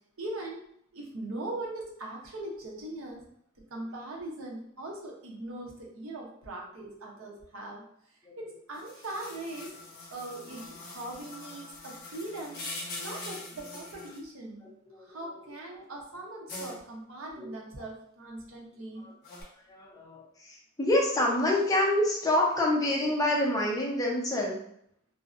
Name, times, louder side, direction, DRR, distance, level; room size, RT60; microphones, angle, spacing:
voice 1, 0.2-0.6 0.9-3.2 3.7-7.8 8.4-9.7 10.1-12.6 13.0-14.7 15.0-19.1, right 2 dB, 80° right, -1 dB, 0.7 m, -40 dB
sound 1, 8.7-14.2 16.5-16.8 19.2-19.4, left 2 dB, 50° left, 0.7 m, -43 dB
voice 2, 14.9-15.2 15.7-15.8 17.4-17.5 19.0-19.1 19.7-24.6, left 1 dB, 20° left, -2 dB, 0.5 m, -27 dB
2.5 x 2.0 x 2.4 m, 0.69 s
head